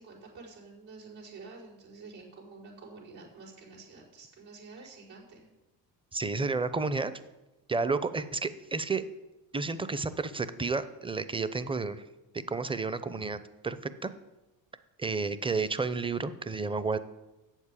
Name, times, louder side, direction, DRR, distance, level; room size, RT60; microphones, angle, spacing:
voice 1, 0.0-5.5, right 4 dB, 75° right, -5 dB, 5.0 m, -49 dB
voice 2, 6.1-7.1 7.7-9.0 9.5-12.0 12.3-13.8 14.0-14.1 15.0-17.0, right 4 dB, 10° right, 13 dB, 0.7 m, -31 dB
8.3 x 7.4 x 8.3 m, 1.0 s
supercardioid pair, 80°, 44 cm